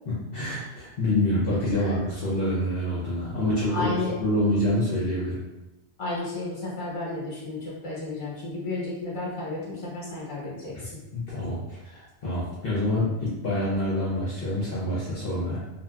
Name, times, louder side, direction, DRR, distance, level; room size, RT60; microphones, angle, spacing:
voice 1, 0.1-3.9 4.2-5.4 10.7-10.8 11.1-15.6, left 1 dB, 60° left, -8 dB, 0.9 m, -27 dB
voice 2, 1.7-2.1 3.7-4.2 6.0-10.9, left 2 dB, 30° left, -7 dB, 1.1 m, -33 dB
2.8 x 2.7 x 2.3 m, 0.99 s
omnidirectional pair, 1.2 m